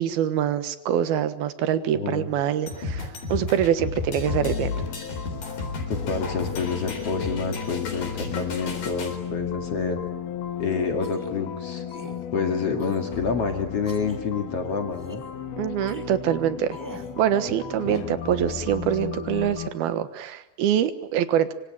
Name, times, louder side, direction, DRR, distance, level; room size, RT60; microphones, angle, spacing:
voice 1, 0.0-4.7 15.6-16.8 17.2-21.5, right 10 dB, 85° right, 11 dB, 3.3 m, -25 dB
voice 2, 1.8-2.3 5.9-10.0 10.6-11.8 12.3-15.2 17.9-18.0, left 5 dB, 45° left, 5 dB, 2.9 m, -28 dB
sound 1, 2.7-9.2, left 3 dB, 70° left, 5.6 m, -33 dB
sound 2, 4.3-19.7, left 8 dB, 90° left, 3.7 m, -34 dB
sound 3, 11.0-11.4 11.9-12.3 12.8-13.3 13.9-14.2 14.9-15.3 15.9-16.0 16.7-17.2, equal, 5° right, 1.9 m, -44 dB
25.5 x 25.5 x 8.9 m, 0.79 s
omnidirectional pair, 4.2 m